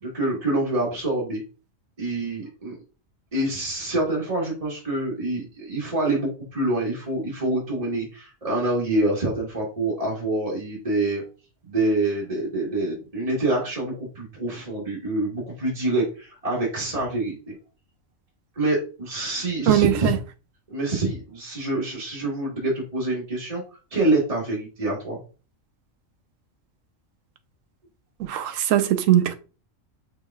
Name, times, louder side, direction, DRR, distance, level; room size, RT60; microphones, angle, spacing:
voice 1, 0.0-1.4 2.0-2.8 3.3-11.2 11.7-17.5 18.5-20.1 20.7-23.6 23.9-25.2, right 2 dB, 30° right, 1.5 m, -26 dB
voice 2, 19.7-20.2 28.2-29.3, right 12 dB, 80° right, 1.0 m, -20 dB
6.3 x 3.4 x 2.3 m
omnidirectional pair, 1.3 m